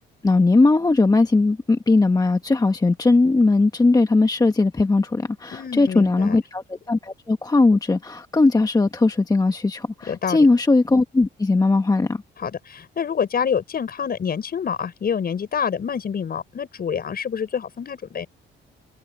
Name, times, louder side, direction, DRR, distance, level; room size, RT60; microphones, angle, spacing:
voice 1, 0.2-12.2, left 3 dB, 20° left, 1.2 m, -19 dB
voice 2, 5.5-6.4 10.1-10.5 12.4-18.3, left 7 dB, 50° left, 7.0 m, -27 dB
cardioid pair, 90°, 20 cm